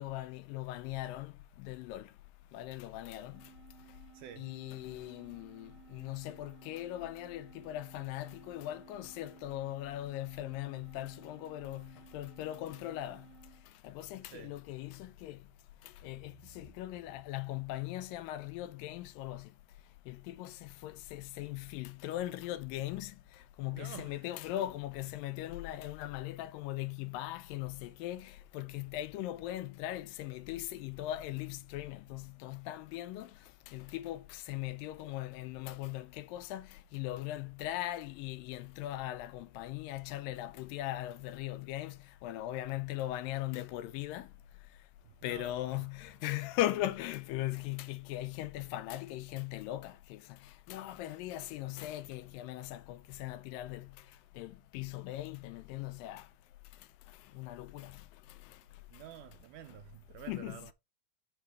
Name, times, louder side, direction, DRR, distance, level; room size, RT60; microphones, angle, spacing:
voice 1, 0.0-1.3 1.6-2.1 2.5-3.5 4.4-13.3 13.8-15.4 15.8-19.5 20.1-33.3 33.7-44.3 45.2-54.0 54.4-56.3 57.3-58.6 60.3-60.6, left 14 dB, 80° left, 2.2 m, -39 dB
sound 1, 3.3-13.7, right 8 dB, 10° right, 1.0 m, -58 dB
voice 2, 4.1-4.5 14.2-14.6 16.3-16.4 23.7-24.4 45.0-45.9 46.5-46.6 58.9-60.7, right 10 dB, 80° right, 1.8 m, -50 dB
6.5 x 5.9 x 3.4 m
omnidirectional pair, 4.1 m